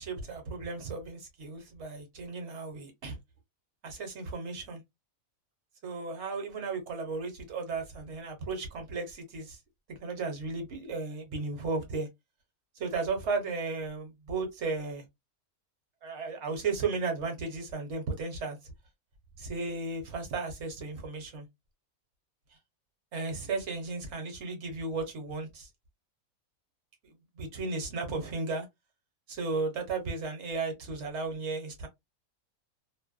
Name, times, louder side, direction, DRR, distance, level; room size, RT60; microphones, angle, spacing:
voice 1, 0.0-3.2 3.8-4.8 5.8-9.6 9.9-12.1 12.8-15.0 16.0-18.7 19.4-21.5 23.1-25.7 27.0-28.7 29.3-31.9, right 4 dB, 55° right, 1.0 m, -35 dB
2.6 x 2.1 x 2.3 m
omnidirectional pair, 1.5 m